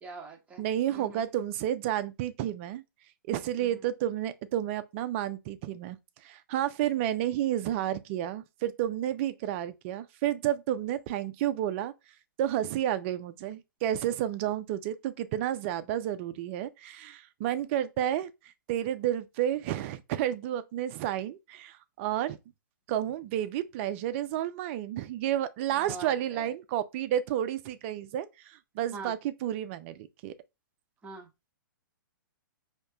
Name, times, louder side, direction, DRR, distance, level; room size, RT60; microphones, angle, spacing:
voice 1, 0.0-0.6 0.9-1.2 25.8-26.5 28.9-29.1 31.0-31.3, right 3 dB, 10° right, 1.1 m, -43 dB
voice 2, 0.6-2.8 3.3-6.0 6.2-11.9 12.4-18.3 18.7-22.4 22.9-30.3, right 11 dB, 35° right, 0.5 m, -31 dB
5.1 x 2.8 x 2.2 m
hypercardioid pair, 140°, 11 cm